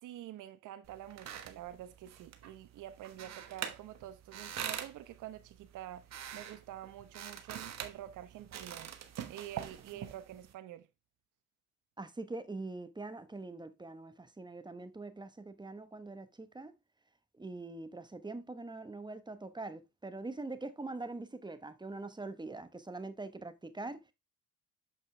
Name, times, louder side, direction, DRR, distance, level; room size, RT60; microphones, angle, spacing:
voice 1, 0.0-8.9 9.3-10.9, right 12 dB, 75° right, 1.0 m, -47 dB
sound 1, 0.8-10.5, right 9 dB, 60° right, 1.2 m, -45 dB
voice 2, 12.0-16.7 17.4-24.1, right 2 dB, 15° right, 1.1 m, -43 dB
7.1 x 5.5 x 3.3 m
supercardioid pair, 75°, 31 cm